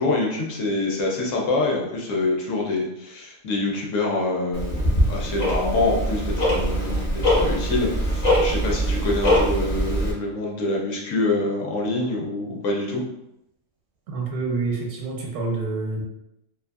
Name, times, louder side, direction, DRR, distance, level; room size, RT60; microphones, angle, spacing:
voice 1, 0.0-13.0, left 2 dB, 65° left, -2 dB, 0.9 m, -26 dB
Tick-tock, 4.5-10.1, equal, 35° left, 0.7 m, -22 dB
voice 2, 14.1-16.0, right 3 dB, 80° right, 0 dB, 1.1 m, -27 dB
2.6 x 2.4 x 2.3 m, 0.85 s
omnidirectional pair, 1.6 m